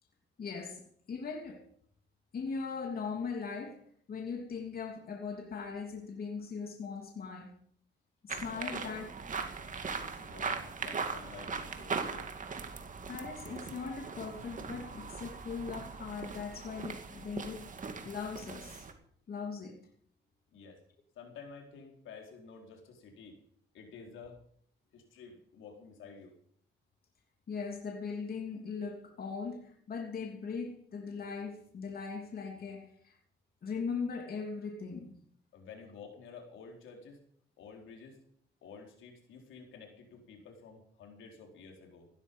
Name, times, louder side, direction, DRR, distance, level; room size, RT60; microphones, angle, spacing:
voice 1, 0.4-1.6 2.3-3.8 4.1-7.5 8.2-9.1 13.1-17.8 18.0-18.9 19.3-19.8 27.5-33.2 33.6-35.2, left 5 dB, 50° left, 3.1 m, -39 dB
voice 2, 8.3-9.0 9.9-12.3 20.5-20.8 21.2-23.4 23.7-24.4 24.9-26.3 35.5-37.2 37.6-38.2 38.6-42.1, left 5 dB, 80° left, 4.2 m, -51 dB
sound 1, 8.3-18.9, right 5 dB, 40° right, 2.3 m, -40 dB
15.5 x 13.0 x 5.4 m
cardioid pair, 90°, 20 cm